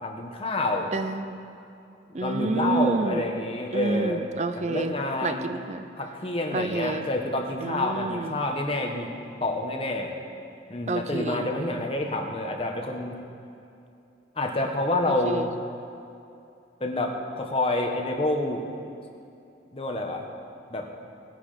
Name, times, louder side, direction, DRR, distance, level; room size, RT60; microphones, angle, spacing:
voice 1, 0.0-0.9 2.1-4.2 4.5-5.5 6.0-9.1 9.4-10.1 10.7-13.2 14.3-15.5 16.8-18.6 19.7-20.3 20.7-20.9, left 2 dB, 35° left, 2 dB, 1.4 m, -28 dB
voice 2, 0.9-1.4 2.1-3.2 3.7-4.9 5.2-5.9 6.5-7.0 7.6-8.3 10.9-11.4 15.3-15.4, right 3 dB, 40° right, 9 dB, 0.5 m, -28 dB
18.5 x 9.8 x 5.1 m, 2.6 s
head